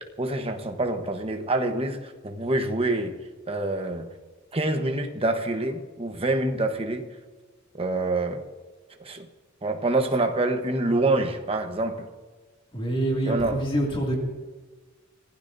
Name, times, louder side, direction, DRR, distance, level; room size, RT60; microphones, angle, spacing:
voice 1, 0.2-3.2 3.5-4.1 4.5-7.1 7.7-8.4 9.0-9.3 9.6-12.1 13.2-13.6, right 2 dB, 30° right, 5 dB, 1.1 m, -26 dB
voice 2, 12.7-14.2, right 1 dB, 25° left, -1 dB, 2.5 m, -26 dB
25.5 x 16.0 x 2.7 m, 1.3 s
head